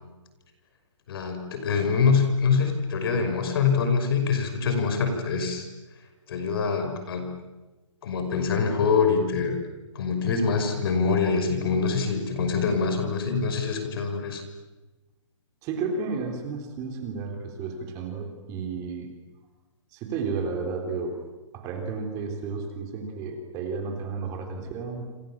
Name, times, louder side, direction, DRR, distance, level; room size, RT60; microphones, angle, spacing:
voice 1, 1.1-5.7 6.3-7.3 8.0-9.6 9.9-14.4, left 5 dB, 45° left, 6 dB, 5.7 m, -24 dB
voice 2, 15.6-19.1 19.9-21.1 21.5-25.0, right 4 dB, 20° right, 3 dB, 3.7 m, -32 dB
28.5 x 28.0 x 7.5 m, 1.2 s
hypercardioid pair, 170°, 17 cm